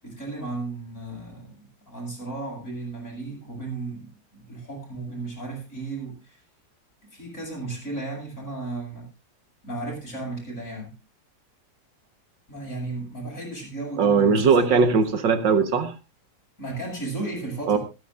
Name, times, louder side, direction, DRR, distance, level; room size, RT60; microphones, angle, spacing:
voice 1, 0.0-6.4 7.1-9.1 9.6-10.9 12.5-14.8 16.6-17.8, right 3 dB, 45° left, -1 dB, 7.6 m, -34 dB
voice 2, 14.0-15.9 17.7-17.8, right 5 dB, 75° right, 9 dB, 2.0 m, -19 dB
26.0 x 10.5 x 2.5 m, 0.28 s
omnidirectional pair, 2.0 m